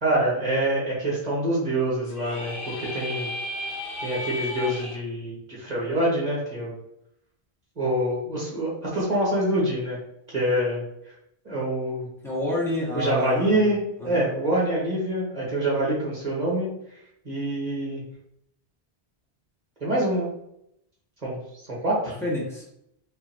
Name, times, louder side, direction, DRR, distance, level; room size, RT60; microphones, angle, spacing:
voice 1, 0.0-3.3 4.0-6.8 7.8-10.0 10.3-10.8 11.4-12.1 12.9-13.8 14.0-16.7 17.2-18.0 19.8-20.3 21.2-21.4 21.7-22.1, right 1 dB, 40° right, -6 dB, 1.9 m, -25 dB
sound 1, 2.1-5.0, left 1 dB, 60° left, 1.1 m, -34 dB
voice 2, 12.2-13.7 14.0-14.2 22.2-22.7, left 1 dB, ahead, -6 dB, 1.7 m, -28 dB
5.4 x 3.3 x 2.8 m, 0.77 s
omnidirectional pair, 1.1 m